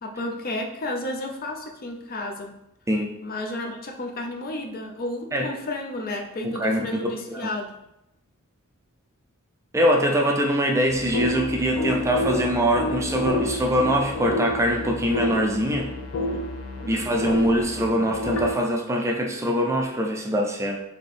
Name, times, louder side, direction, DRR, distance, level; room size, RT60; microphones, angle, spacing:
voice 1, 0.0-2.6 3.2-7.8 16.8-17.4, left 1 dB, 45° left, 3 dB, 0.5 m, -32 dB
voice 2, 6.4-7.5 9.7-15.9 16.9-20.8, equal, 15° right, 1 dB, 0.4 m, -23 dB
sound 1, 10.9-18.5, left 1 dB, 85° left, 0.7 m, -29 dB
4.2 x 3.0 x 3.3 m, 0.86 s
head